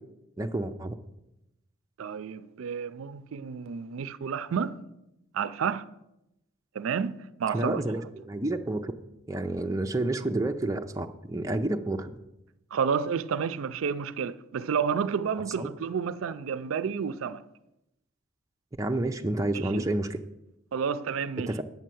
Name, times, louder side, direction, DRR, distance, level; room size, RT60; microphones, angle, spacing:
voice 1, 0.4-0.9 7.5-8.9 9.3-12.1 15.6-15.7 18.8-20.2 21.5-21.6, right 2 dB, 15° right, 0.5 m, -29 dB
voice 2, 2.0-4.8 5.3-5.9 6.7-7.8 12.7-17.4 19.7-19.8 20.7-21.5, right 6 dB, 75° right, 0.4 m, -30 dB
9.1 x 5.5 x 7.7 m
head